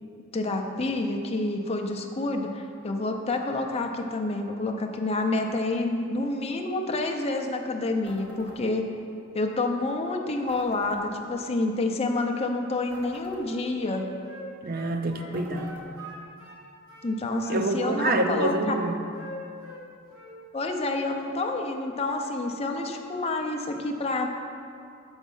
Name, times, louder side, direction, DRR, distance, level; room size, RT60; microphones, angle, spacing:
voice 1, 0.3-8.9 9.3-14.1 17.0-18.8 20.5-24.3, left 2 dB, 30° left, 3 dB, 0.5 m, -28 dB
sound 1, 8.1-8.6 10.5-11.0 12.9-13.4 15.3-15.9, equal, 5° right, 1.5 m, -46 dB
Wind instrument woodwind instrument, 13.4-16.6 16.9-18.5 18.7-19.8 20.1-20.4, equal, 80° right, 1.6 m, -43 dB
voice 2, 14.6-15.7 17.5-19.0, right 2 dB, 45° right, 6 dB, 0.5 m, -27 dB
7.1 x 4.1 x 5.4 m, 2.4 s
head